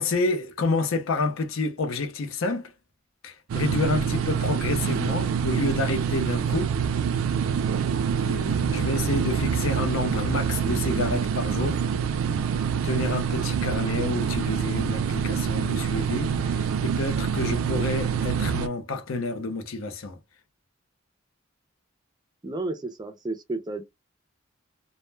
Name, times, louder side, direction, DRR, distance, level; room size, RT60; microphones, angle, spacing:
voice 1, 0.0-2.7 3.2-6.7 8.2-11.8 12.8-20.2, left 3 dB, 80° left, 0.6 m, -29 dB
sound 1, 3.5-18.7, right 7 dB, 90° right, 0.3 m, -26 dB
voice 2, 22.4-23.8, right 2 dB, 20° right, 0.4 m, -32 dB
2.1 x 2.1 x 3.1 m
head